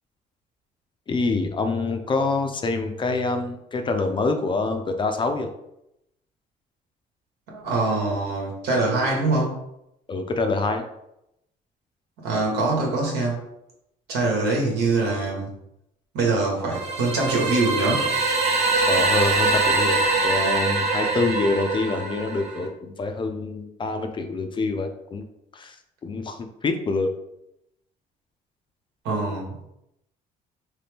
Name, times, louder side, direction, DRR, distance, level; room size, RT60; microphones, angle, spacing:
voice 1, 1.1-5.5 10.1-10.9 18.9-25.2 25.5-25.8 26.0-27.1, left 3 dB, 30° left, 6 dB, 0.4 m, -26 dB
voice 2, 7.5-9.6 12.2-13.4 14.1-15.5 16.1-18.1 29.0-29.6, right 3 dB, 80° right, -1 dB, 1.3 m, -24 dB
sound 1, 16.7-22.7, right 3 dB, 40° right, 0.8 m, -23 dB
3.2 x 2.8 x 3.4 m, 0.82 s
cardioid pair, 110°, 17 cm